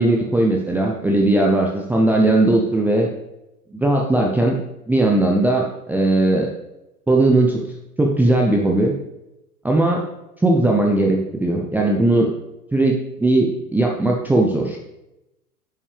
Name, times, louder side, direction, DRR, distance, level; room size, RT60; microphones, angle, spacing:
voice 1, 0.0-3.1 3.7-4.6 4.9-6.5 7.1-7.6 8.0-9.0 9.6-10.0 10.4-12.3 12.7-14.8, right 2 dB, 5° right, -1 dB, 0.7 m, -18 dB
9.6 x 7.2 x 3.4 m, 0.92 s
figure-of-eight pair, 90°, 45 cm